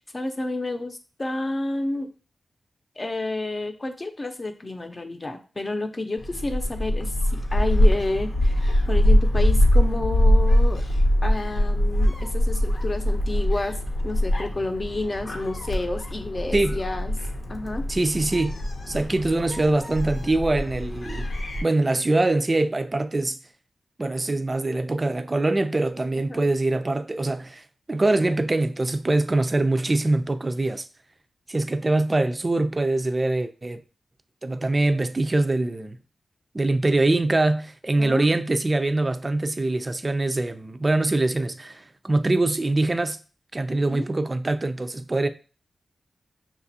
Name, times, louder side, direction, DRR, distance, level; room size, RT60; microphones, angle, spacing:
voice 1, 0.0-2.1 3.0-10.8 11.2-17.1 17.5-17.8 26.3-26.4 38.0-38.3 43.7-44.1, left 2 dB, 35° left, 0.7 m, -30 dB
Gull seagull, 6.2-21.6, left 1 dB, 70° left, 0.8 m, -23 dB
voice 2, 17.9-18.5 18.9-21.3 21.6-23.4 24.0-27.6 27.9-30.9 31.5-33.8 34.4-36.0 36.5-43.2 43.5-45.3, right 2 dB, 35° right, 0.4 m, -23 dB
5.9 x 2.4 x 2.7 m
cardioid pair, 55°, 0 cm